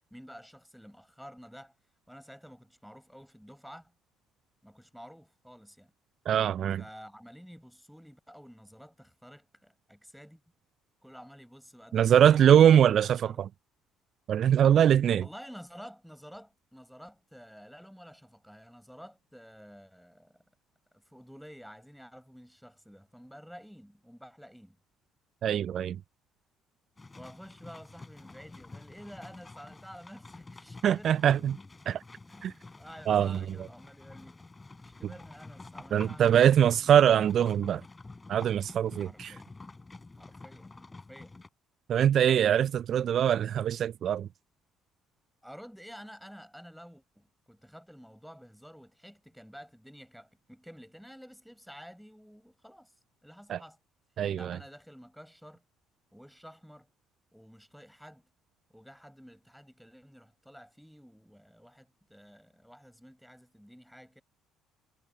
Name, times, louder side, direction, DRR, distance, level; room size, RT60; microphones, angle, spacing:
voice 1, 0.1-1.7 2.1-3.9 4.6-5.9 6.8-10.4 11.0-13.4 15.1-20.4 20.9-24.8 27.1-31.3 32.3-34.4 34.8-36.3 36.6-36.9 39.0-39.5 40.2-41.4 45.4-52.9 53.2-53.8 54.3-55.6 56.1-56.9 57.3-58.3 58.7-64.2, equal, ahead, 5.9 m, -51 dB
voice 2, 6.3-6.8 11.9-13.5 14.3-15.2 25.4-26.0 30.8-31.6 31.9-32.0 32.4-32.5 33.1-33.4 35.9-37.8 38.3-39.3 41.9-44.3 53.5-53.6 54.2-54.6, right 9 dB, 50° right, 0.6 m, -23 dB
sound 1, 27.0-41.5, left 3 dB, 20° left, 4.3 m, -49 dB
figure-of-eight pair, 50°, 0 cm